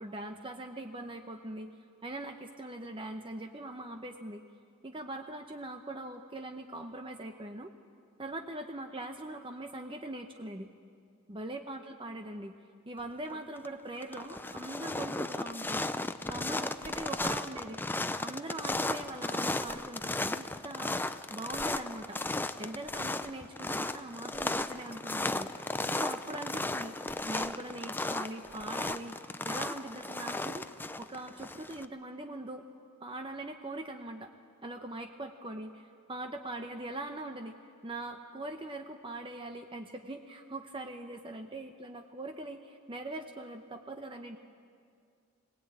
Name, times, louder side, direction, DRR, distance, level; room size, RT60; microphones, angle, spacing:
voice 1, 0.0-1.7 2.0-4.4 4.8-7.7 8.2-10.7 11.3-12.5 12.9-15.9 16.3-17.8 18.2-22.2 22.6-25.5 25.9-26.9 27.2-32.6 33.0-34.3 34.6-37.6 37.8-44.4, right 2 dB, 25° right, 5 dB, 0.8 m, -42 dB
sound 1, 13.3-13.7 14.0-31.8, left 2 dB, 10° left, 0.5 m, -35 dB
21.0 x 19.0 x 8.9 m, 2.2 s
head